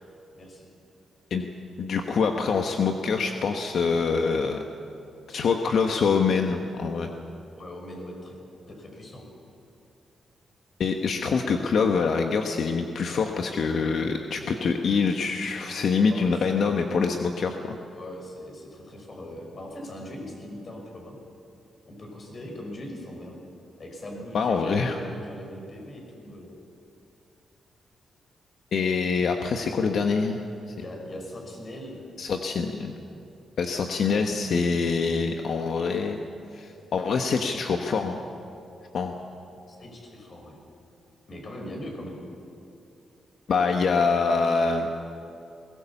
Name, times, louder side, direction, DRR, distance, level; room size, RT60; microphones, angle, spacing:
voice 1, 0.3-0.7 7.6-8.3 8.7-9.2 16.1-16.6 17.9-21.2 21.9-23.4 23.8-26.6 30.8-32.0 39.7-40.6 41.3-42.2, left 1 dB, 40° left, 1 dB, 5.7 m, -40 dB
voice 2, 1.8-4.6 5.3-7.1 10.8-17.8 24.3-25.0 28.7-30.5 32.2-33.0 33.6-36.2 36.5-38.2 38.9-39.1 43.5-45.0, left 5 dB, 65° left, 4 dB, 1.2 m, -25 dB
21.5 x 18.5 x 7.2 m, 2.7 s
cardioid pair, 95°, 0 cm